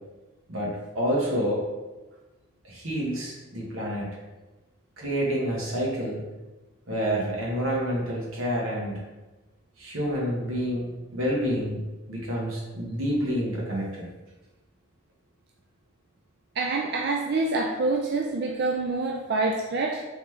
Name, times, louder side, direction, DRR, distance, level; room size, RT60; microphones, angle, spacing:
voice 1, 0.5-1.6 2.6-4.1 5.0-6.2 6.9-9.0 9.8-11.8 12.1-14.0, equal, 85° right, -4 dB, 1.4 m, -28 dB
voice 2, 16.6-20.0, right 3 dB, 50° right, 0 dB, 0.4 m, -26 dB
3.8 x 3.2 x 3.6 m, 1.1 s
head